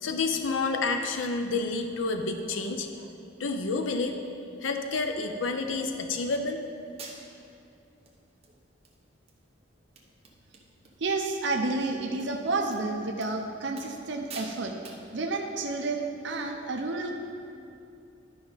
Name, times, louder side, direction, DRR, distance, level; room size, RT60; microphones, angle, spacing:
voice 1, 0.0-3.1 3.4-4.2 4.6-6.6, left 3 dB, 75° left, 6 dB, 0.5 m, -29 dB
sound 1, 6.4-6.5 7.0-7.5 8.1-8.2 8.4-9.0 9.3-9.4 9.7-9.8 10.0-11.0 11.2-11.5 12.2-12.3 12.7-12.8 13.2-13.4 13.8-14.0 14.3-14.6 14.8-15.1, right 4 dB, 30° right, 0.9 m, -46 dB
voice 2, 11.0-14.7 15.1-17.2, right 3 dB, 65° right, 3 dB, 0.6 m, -30 dB
11.5 x 5.2 x 4.0 m, 2.6 s
head